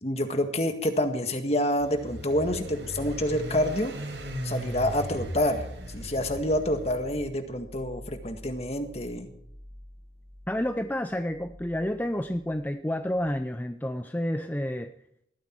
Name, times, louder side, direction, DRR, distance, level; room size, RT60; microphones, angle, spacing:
voice 1, 0.0-3.9 4.4-9.3, left 1 dB, 35° left, 1.8 m, -28 dB
sound 1, 1.8-7.3, right 1 dB, 80° right, 5.8 m, -38 dB
sound 2, 2.4-13.4, left 1 dB, 30° right, 1.4 m, -47 dB
voice 2, 10.5-14.9, left 1 dB, 10° left, 0.5 m, -30 dB
20.0 x 14.0 x 4.6 m
head